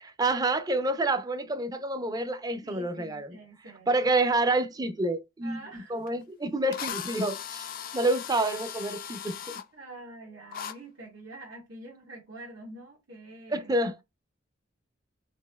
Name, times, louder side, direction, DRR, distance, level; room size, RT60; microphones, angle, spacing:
voice 1, 0.0-3.3 3.9-9.4 13.5-14.0, right 2 dB, 20° right, 0.5 m, -28 dB
voice 2, 2.6-3.9 5.4-5.9 9.7-13.7, right 2 dB, 75° right, 1.1 m, -46 dB
Drill, 6.1-6.2 6.7-9.6 10.5-10.7, left 9 dB, 50° left, 0.4 m, -38 dB
4.2 x 2.7 x 2.2 m
head